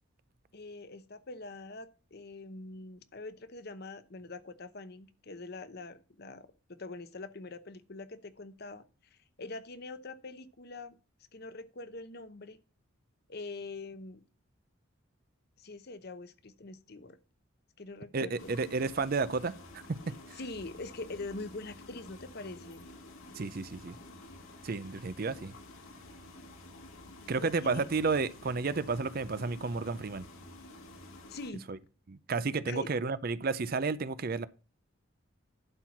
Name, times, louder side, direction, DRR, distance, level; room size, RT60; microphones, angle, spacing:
voice 1, 0.5-8.8 9.1-11.0 11.3-12.6 13.3-14.2 15.6-17.2 17.8-18.6 20.3-22.9 27.3-27.9 31.3-31.6 32.7-32.9, left 2 dB, 45° left, 0.8 m, -44 dB
voice 2, 18.1-19.5 20.3-20.4 23.3-24.0 24.6-25.5 27.3-30.2 31.7-31.8 32.1-34.5, right 4 dB, 45° right, 0.5 m, -32 dB
sound 1, 18.4-31.5, left 2 dB, 75° left, 1.9 m, -50 dB
11.5 x 4.5 x 5.8 m
head